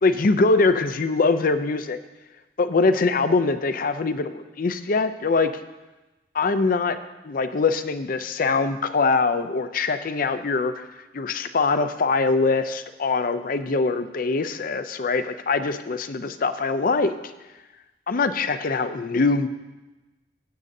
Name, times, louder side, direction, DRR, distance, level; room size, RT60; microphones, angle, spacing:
voice 1, 0.0-2.0 2.6-5.5 6.3-7.0 7.2-10.9 11.1-17.1 18.1-19.5, left 4 dB, 50° left, 10 dB, 0.5 m, -23 dB
15.0 x 8.6 x 2.7 m, 1.1 s
head